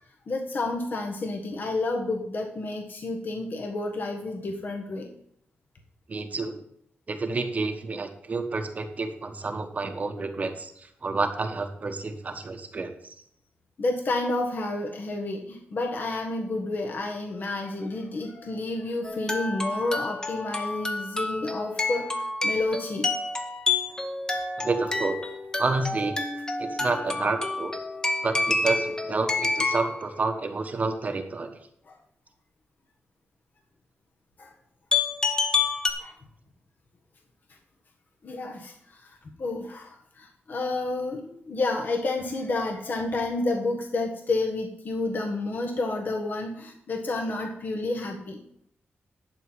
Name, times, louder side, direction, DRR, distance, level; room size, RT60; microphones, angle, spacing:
voice 1, 0.3-5.1 13.8-23.1 31.9-32.0 34.4-34.5 36.0-36.1 38.2-39.0 39.4-48.4, left 2 dB, 50° left, 2 dB, 1.4 m, -30 dB
voice 2, 6.1-6.6 7.1-13.1 24.6-25.2 25.6-26.2 26.6-27.7 28.2-31.6, right 3 dB, 40° right, 6 dB, 1.2 m, -29 dB
sound 1, 19.0-30.0 34.9-35.9, left 3 dB, 15° left, 1.1 m, -28 dB
11.0 x 4.5 x 7.9 m, 0.68 s
wide cardioid pair, 120°, 4 cm